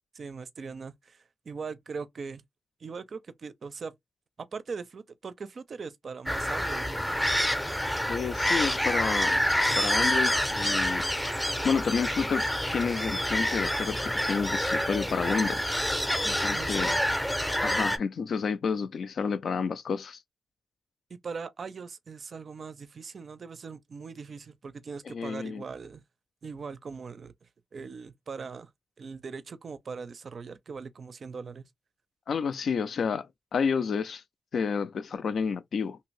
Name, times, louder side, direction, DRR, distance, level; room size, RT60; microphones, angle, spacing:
voice 1, 0.1-2.4 2.8-3.9 4.4-7.0 16.5-17.0 21.1-26.0 26.4-28.7 29.0-31.7, right 5 dB, 60° right, 0.4 m, -40 dB
sound 1, 6.3-18.0, equal, 5° left, 0.6 m, -27 dB
voice 2, 8.1-9.4 9.8-11.1 11.6-12.5 12.7-15.7 16.2-17.0 17.6-20.2 25.1-25.6 32.3-34.2 34.5-36.0, left 6 dB, 75° left, 0.4 m, -30 dB
2.8 x 2.6 x 3.1 m
cardioid pair, 90°, 0 cm